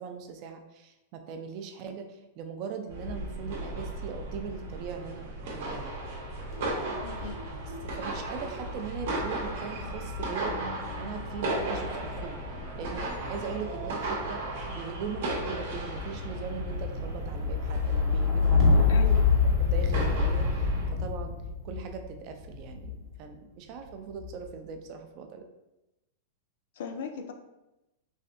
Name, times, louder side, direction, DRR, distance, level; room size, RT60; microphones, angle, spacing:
voice 1, 0.0-5.9 6.7-6.9 7.9-10.6 11.0-12.4 12.7-18.8 19.6-21.4 21.6-25.4, right 6 dB, 35° right, 5 dB, 0.3 m, -40 dB
sound 1, 2.9-20.9, right 1 dB, 65° right, 0.8 m, -36 dB
sound 2, 6.5-23.1 23.9-24.5, left 4 dB, 15° right, 0.8 m, -29 dB
voice 2, 7.0-7.4 18.9-19.5 26.8-27.3, left 5 dB, 65° left, 6 dB, 0.4 m, -38 dB
3.2 x 2.6 x 2.5 m, 0.95 s
supercardioid pair, 160°, 0 cm